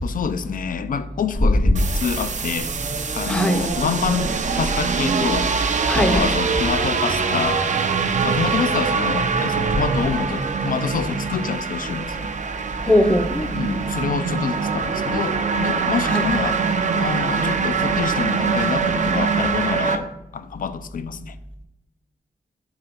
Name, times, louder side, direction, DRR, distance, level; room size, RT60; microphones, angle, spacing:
voice 1, 0.0-2.7 3.1-5.5 6.0-7.7 8.2-12.3 13.5-16.6 17.0-21.4, left 6 dB, 60° left, 0.4 m, -27 dB
sound 1, 1.7-20.0, right 5 dB, 50° right, 0.6 m, -23 dB
voice 2, 3.3-3.6 5.9-6.2 12.8-13.5 16.1-16.3, left 1 dB, 5° left, 0.6 m, -19 dB
5.8 x 3.3 x 5.3 m
wide cardioid pair, 80°, 16 cm